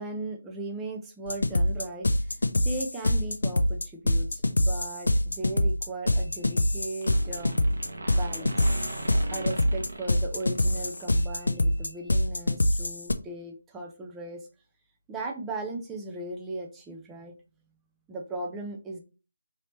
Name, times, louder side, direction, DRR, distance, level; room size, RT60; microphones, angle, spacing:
voice 1, 0.0-7.6 8.1-8.7 9.3-14.5 15.1-17.3 18.1-19.0, right 2 dB, 10° right, 1 dB, 0.6 m, -37 dB
sound 1, 1.3-13.1, left 1 dB, 80° left, 0.4 m, -25 dB
sound 2, 6.1-6.7 7.0-11.4, right 2 dB, 65° right, 0.9 m, -39 dB
3.2 x 2.8 x 2.9 m, 0.33 s
figure-of-eight pair, 155°, 0 cm